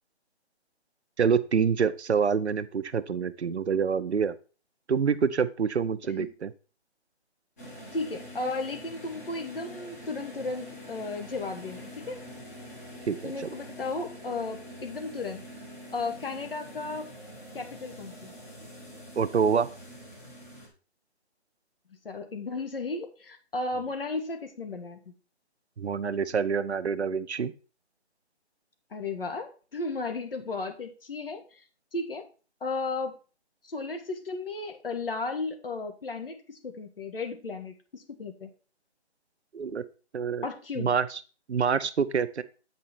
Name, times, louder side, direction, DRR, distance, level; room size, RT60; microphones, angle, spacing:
voice 1, 1.2-4.4 4.9-6.5 13.1-13.5 19.2-19.7 25.8-27.5 39.5-39.8 40.1-40.5 40.8-41.1 41.5-42.4, right 6 dB, 75° right, 12 dB, 0.8 m, -26 dB
sound 1, 7.6-20.7, equal, 15° left, 1.2 m, -45 dB
voice 2, 7.9-12.2 13.2-15.4 15.9-17.1 17.5-18.3 22.0-25.1 28.9-31.6 31.9-32.3 32.6-33.2 33.6-38.5 40.4-40.9, left 3 dB, 55° left, 6 dB, 1.7 m, -34 dB
8.4 x 5.3 x 4.3 m, 0.36 s
hypercardioid pair, 170°, 34 cm